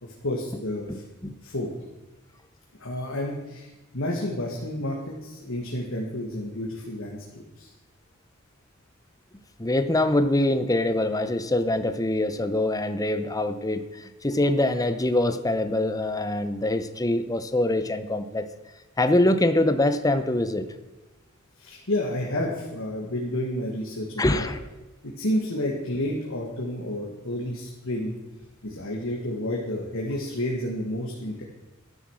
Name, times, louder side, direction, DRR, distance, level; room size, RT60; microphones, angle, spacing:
voice 1, 0.0-1.0 1.4-1.7 2.8-3.7 3.9-7.7 21.6-24.5 25.0-28.2 28.6-31.4, left 1 dB, 70° left, -1 dB, 1.9 m, -30 dB
voice 2, 9.6-18.5 19.0-20.7 24.2-24.6, left 1 dB, 15° left, 10 dB, 0.7 m, -24 dB
12.5 x 10.0 x 6.3 m, 1.1 s
head